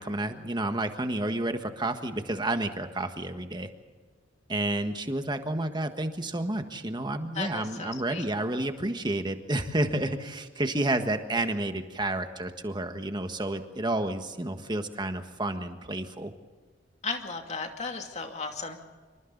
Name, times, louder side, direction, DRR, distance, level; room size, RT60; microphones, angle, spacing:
voice 1, 0.0-3.7 4.5-16.3, right 1 dB, 25° right, 7 dB, 1.5 m, -30 dB
voice 2, 7.3-8.3 17.0-18.8, left 4 dB, 35° left, 4 dB, 2.5 m, -35 dB
27.0 x 25.5 x 4.1 m, 1.4 s
head